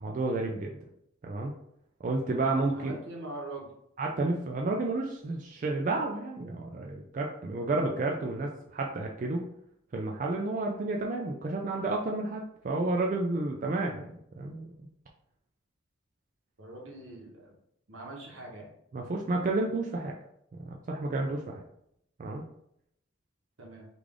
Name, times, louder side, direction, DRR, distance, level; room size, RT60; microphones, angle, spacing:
voice 1, 0.0-0.8 1.2-1.5 2.0-3.0 4.0-9.5 9.9-14.7 18.9-20.1 20.6-21.6 22.2-22.4, right 2 dB, 40° right, 0 dB, 0.3 m, -31 dB
voice 2, 2.7-3.7 16.6-17.5 17.9-18.7 23.6-23.9, right 2 dB, 80° right, -1 dB, 1.0 m, -42 dB
3.3 x 2.4 x 3.6 m, 0.75 s
head